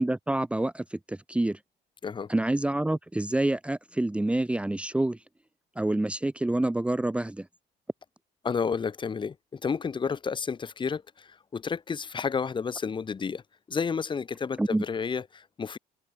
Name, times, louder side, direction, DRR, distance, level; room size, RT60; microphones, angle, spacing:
voice 1, 0.0-1.6 2.3-5.2 5.8-7.5 14.6-14.8, right 1 dB, 5° right, 1.2 m, -27 dB
voice 2, 8.4-13.4 13.7-15.8, left 6 dB, 30° left, 2.4 m, -31 dB
open air
cardioid pair, 130°, 17 cm